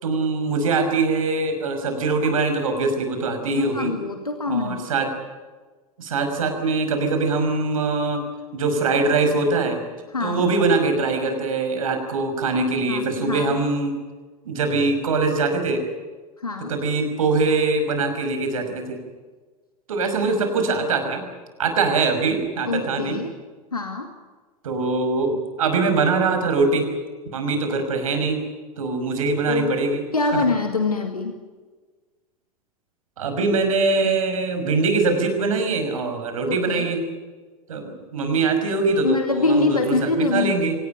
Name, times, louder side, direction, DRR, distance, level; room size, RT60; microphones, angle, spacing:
voice 1, 0.0-3.9 4.5-5.1 6.0-8.2 8.5-9.8 10.2-13.9 14.5-15.8 16.7-19.0 19.9-21.2 21.6-23.2 24.6-26.9 27.3-28.4 28.8-30.0 30.3-30.4 33.2-37.0 37.7-40.8, right 3 dB, 65° right, 6 dB, 5.7 m, -22 dB
voice 2, 3.5-4.9 10.1-10.4 12.8-13.5 16.4-16.7 22.6-23.3 23.7-24.1 29.5-29.8 30.1-31.4 36.5-36.9 39.0-40.5, left 3 dB, 80° left, 5 dB, 2.4 m, -24 dB
25.5 x 18.5 x 9.1 m, 1.3 s
figure-of-eight pair, 85°, 19 cm